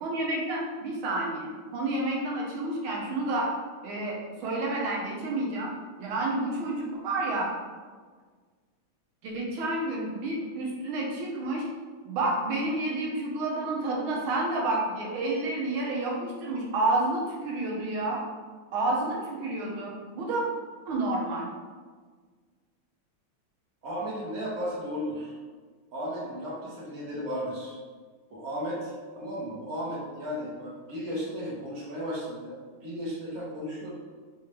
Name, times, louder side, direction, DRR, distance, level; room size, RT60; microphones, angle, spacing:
voice 1, 0.0-3.5 3.8-5.7 6.0-7.5 9.2-11.7 12.0-18.2 18.7-20.4 20.9-21.5, right 2 dB, 75° right, -3 dB, 1.7 m, -30 dB
voice 2, 23.8-25.3 25.9-27.8 28.3-34.0, equal, 50° right, -4 dB, 1.2 m, -35 dB
4.0 x 3.6 x 3.1 m, 1.5 s
omnidirectional pair, 2.4 m